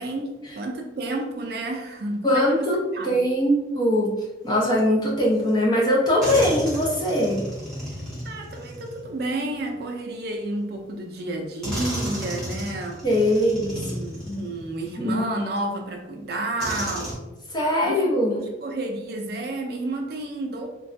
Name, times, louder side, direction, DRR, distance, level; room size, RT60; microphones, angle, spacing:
voice 1, 0.0-3.2 8.2-13.0 13.7-17.2 17.8-18.0 18.4-20.7, right 2 dB, 55° right, 3 dB, 0.4 m, -31 dB
voice 2, 2.2-4.2 4.4-7.4 13.0-13.8 14.3-14.4 15.0-15.3 17.5-18.5, equal, 20° left, -3 dB, 0.6 m, -21 dB
sound 1, 5.5-5.6 6.2-9.8 10.8-10.9 11.6-15.0 15.6-15.7 16.6-17.1, equal, 5° left, 1.0 m, -33 dB
3.2 x 2.2 x 2.5 m, 1.0 s
head